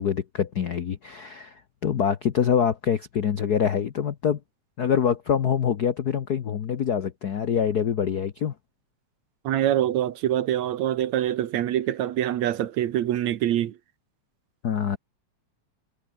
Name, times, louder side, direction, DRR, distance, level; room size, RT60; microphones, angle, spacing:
voice 1, 0.0-4.4 4.8-8.5 14.6-15.0, left 8 dB, 80° left, 0.8 m, -25 dB
voice 2, 9.4-13.8, right 12 dB, 75° right, 2.5 m, -25 dB
omnidirectional pair, 3.3 m